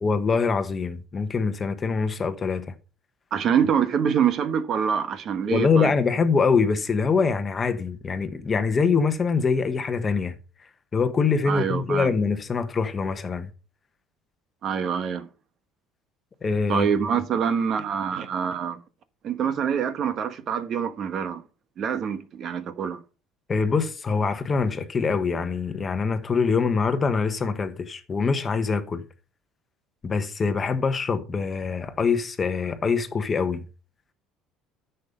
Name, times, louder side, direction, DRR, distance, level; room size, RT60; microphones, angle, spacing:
voice 1, 0.0-2.7 5.4-10.4 10.9-13.5 16.4-16.9 23.5-29.0 30.0-33.6, left 5 dB, 25° left, 1.1 m, -24 dB
voice 2, 3.3-5.9 11.5-12.1 14.6-15.3 16.7-18.8 19.2-21.4 21.8-23.0, right 7 dB, 40° right, 1.2 m, -25 dB
10.5 x 6.8 x 5.6 m
cardioid pair, 145°, 0 cm